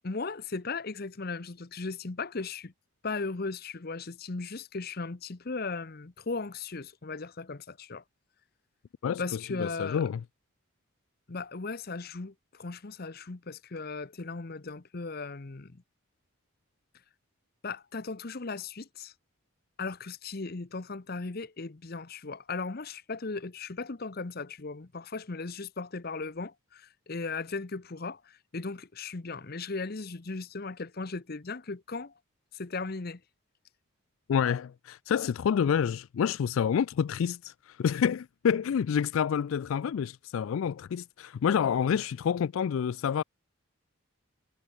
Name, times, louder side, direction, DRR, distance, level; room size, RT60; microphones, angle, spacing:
voice 1, 0.0-2.7 3.0-8.0 9.2-10.0 11.3-15.8 17.6-19.1 19.8-32.1 32.5-33.2, left 4 dB, 45° left, 0.8 m, -37 dB
voice 2, 9.0-10.2 34.3-43.2, left 7 dB, 70° left, 0.3 m, -28 dB
head